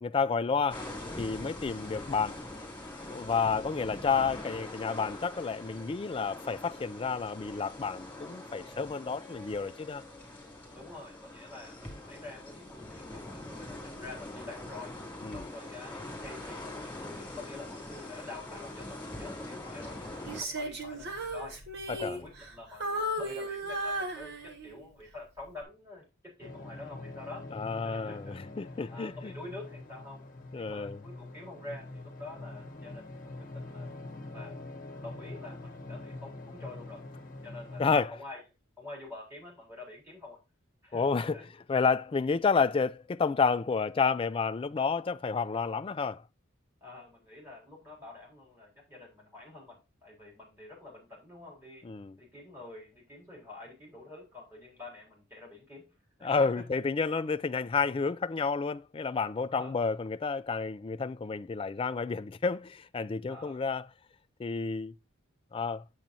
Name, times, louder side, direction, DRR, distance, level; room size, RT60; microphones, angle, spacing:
voice 1, 0.0-0.9 1.2-2.4 3.0-10.0 15.2-15.4 21.9-22.2 27.5-29.3 30.5-31.0 37.8-38.2 40.9-46.2 51.8-52.1 56.2-63.9 64.4-64.9 65.5-65.8, left 5 dB, 25° left, 0.3 m, -30 dB
sound 1, 0.7-20.4, left 1 dB, 10° left, 2.7 m, -43 dB
voice 2, 10.7-14.9 15.3-21.6 21.9-27.5 27.8-28.4 28.9-30.2 30.6-33.9 34.3-34.6 35.0-37.0 37.4-38.4 38.8-40.4 40.8-41.5 46.8-51.9 52.2-55.9 56.2-56.8 59.5-59.7 63.3-63.6, left 2 dB, 10° right, 3.8 m, -47 dB
Female singing, 20.3-22.6 22.8-24.9 25.4-25.6, right 1 dB, 55° right, 1.4 m, -35 dB
sound 2, 26.4-38.0, left 2 dB, 40° left, 1.0 m, -44 dB
8.8 x 7.2 x 2.7 m
head